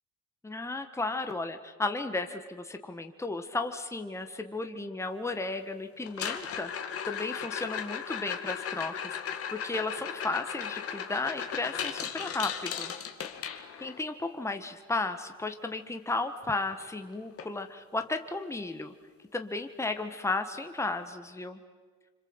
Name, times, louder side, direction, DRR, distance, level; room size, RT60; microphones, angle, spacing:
voice 1, 0.4-12.9 13.8-18.9 19.3-21.6, left 3 dB, 10° left, 7 dB, 1.6 m, -34 dB
sound 1, 6.1-14.0 16.3-16.4 16.6-17.0 17.4-17.5 18.1-18.2 20.0-20.1, left 8 dB, 50° left, 2.3 m, -36 dB
26.0 x 26.0 x 8.1 m, 1.5 s
cardioid pair, 100°, 29 cm